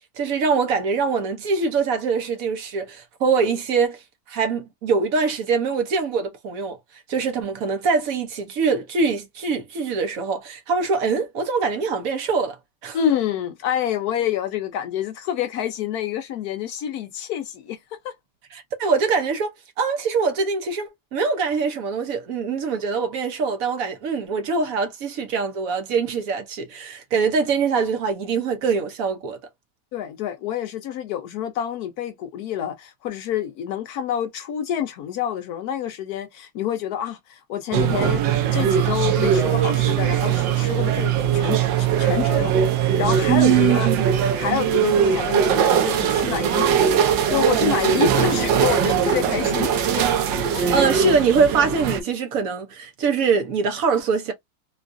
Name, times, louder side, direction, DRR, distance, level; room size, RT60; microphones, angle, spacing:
voice 1, 0.2-4.0 4.3-6.8 7.1-12.6 12.8-13.0 18.5-19.5 19.8-29.4 43.3-44.1 50.7-54.3, right 5 dB, 60° right, 1.0 m, -23 dB
voice 2, 12.9-17.8 18.0-18.1 29.9-38.2 38.5-42.5 42.8-43.9 44.4-46.8 47.1-49.7 50.5-50.7, left 10 dB, 70° left, 0.9 m, -27 dB
sound 1, 37.7-52.0, right 8 dB, 80° right, 1.4 m, -20 dB
3.8 x 2.4 x 2.5 m
omnidirectional pair, 2.0 m